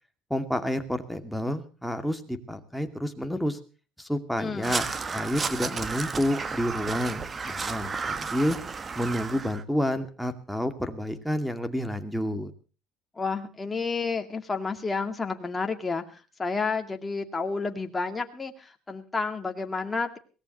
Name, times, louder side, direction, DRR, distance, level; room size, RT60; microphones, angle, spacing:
voice 1, 0.3-3.6 4.0-4.8 5.1-8.6 9.0-12.5, equal, ahead, 5 dB, 2.5 m, -29 dB
voice 2, 4.4-4.8 13.2-20.2, left 4 dB, 15° left, 5 dB, 2.3 m, -31 dB
Crow, 4.6-9.6, right 4 dB, 25° right, 1.2 m, -32 dB
22.5 x 18.0 x 3.1 m, 0.36 s
cardioid pair, 115°, 0 cm